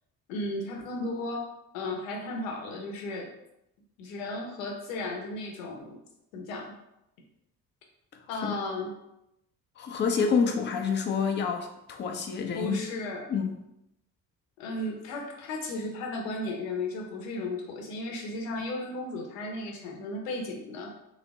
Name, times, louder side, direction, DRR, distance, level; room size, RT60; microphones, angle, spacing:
voice 1, 0.3-1.5 1.7-3.3 4.0-6.0 6.3-6.7 8.3-8.9 12.5-13.2 14.6-20.9, left 2 dB, 65° left, 1 dB, 0.8 m, -35 dB
voice 2, 9.8-12.8 13.3-13.5, left 5 dB, 25° left, 5 dB, 0.4 m, -28 dB
3.2 x 2.1 x 3.6 m, 0.85 s
figure-of-eight pair, 45°, 44 cm